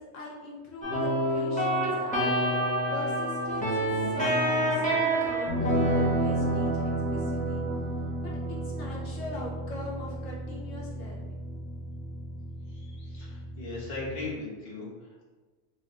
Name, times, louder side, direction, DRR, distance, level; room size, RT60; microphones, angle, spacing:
voice 1, 0.0-2.5 2.9-5.6 5.9-7.6 8.2-11.4, left 1 dB, 85° left, -3 dB, 1.2 m, -41 dB
sound 1, 0.8-14.3, right 1 dB, 10° left, 0.6 m, -29 dB
voice 2, 12.7-15.2, left 3 dB, 40° left, -6 dB, 1.1 m, -39 dB
3.4 x 2.4 x 4.0 m, 1.3 s
omnidirectional pair, 1.3 m